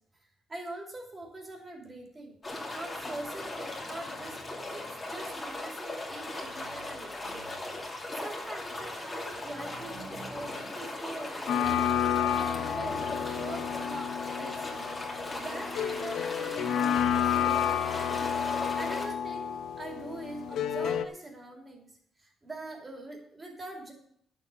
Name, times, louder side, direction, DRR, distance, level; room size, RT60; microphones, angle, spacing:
voice 1, 0.5-2.4 2.7-4.4 4.7-7.6 8.1-11.9 12.3-14.1 14.4-14.9 15.4-18.1 18.7-21.9 22.2-23.9, right 2 dB, 20° right, 1 dB, 2.9 m, -43 dB
sound 1, 2.4-19.0, left 2 dB, 15° left, 2.4 m, -38 dB
sound 2, 11.5-21.1, left 9 dB, 70° left, 0.8 m, -30 dB
11.5 x 7.6 x 5.5 m, 0.64 s
cardioid pair, 170°, 0 cm